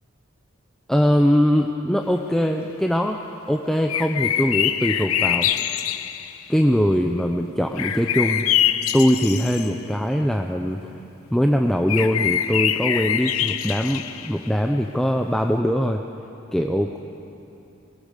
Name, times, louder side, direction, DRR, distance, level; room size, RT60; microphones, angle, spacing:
voice 1, 0.9-3.2 3.5-5.5 6.5-8.4 8.9-10.9 11.3-16.0 16.5-17.0, equal, ahead, 2 dB, 0.6 m, -21 dB
sound 1, 3.9-6.4 7.8-9.7 11.9-14.5, left 10 dB, 90° left, 0.7 m, -24 dB
21.5 x 19.5 x 6.7 m, 2.8 s
head